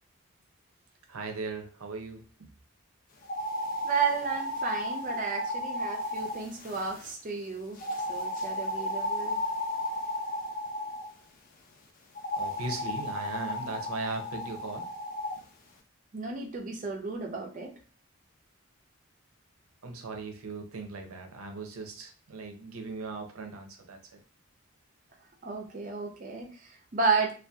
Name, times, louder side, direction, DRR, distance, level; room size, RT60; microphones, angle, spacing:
voice 1, 1.1-2.3 12.4-14.9 19.8-24.2, right 3 dB, 85° right, 4 dB, 0.6 m, -38 dB
sound 1, 3.2-7.1 7.8-11.1 12.2-15.4, left 1 dB, 40° left, 0.4 m, -34 dB
voice 2, 3.8-7.8 8.1-9.4 16.1-17.7 25.4-27.3, right 4 dB, 40° right, 2 dB, 0.4 m, -32 dB
2.7 x 2.3 x 2.2 m, 0.37 s
head